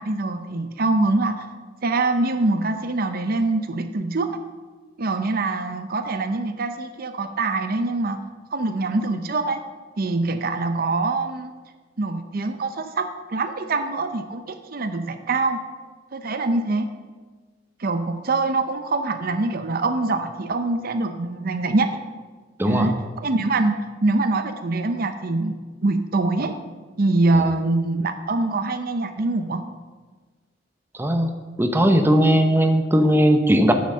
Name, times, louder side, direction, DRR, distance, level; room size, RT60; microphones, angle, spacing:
voice 1, 0.0-1.5 1.8-4.4 5.0-8.2 8.5-9.6 10.0-11.5 12.0-15.6 16.1-16.9 17.8-21.9 22.7-25.6 25.8-26.5 27.0-29.6, right 2 dB, 50° right, 9 dB, 0.6 m, -24 dB
voice 2, 31.0-31.3 31.6-33.7, equal, 10° right, 5 dB, 0.8 m, -18 dB
9.6 x 8.0 x 6.7 m, 1.4 s
head